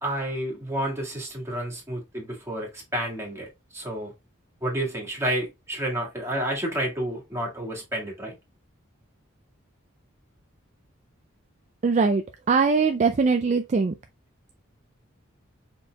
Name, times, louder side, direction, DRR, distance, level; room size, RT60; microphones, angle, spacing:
voice 1, 0.0-4.1 4.6-8.4, right 1 dB, 15° right, 1.9 m, -30 dB
voice 2, 11.8-12.2 12.5-13.9, right 4 dB, 35° right, 0.4 m, -21 dB
5.3 x 4.2 x 2.3 m
head